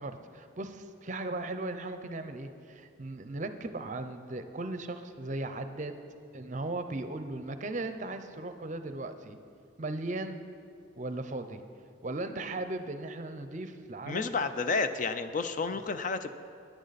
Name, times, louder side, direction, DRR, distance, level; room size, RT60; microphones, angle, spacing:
voice 1, 0.0-6.0 6.3-9.4 9.8-10.4 11.0-11.6 12.0-14.3, right 2 dB, 35° right, 9 dB, 0.6 m, -37 dB
voice 2, 14.1-16.3, left 4 dB, 40° left, 10 dB, 0.4 m, -31 dB
16.5 x 10.0 x 4.1 m, 2.4 s
head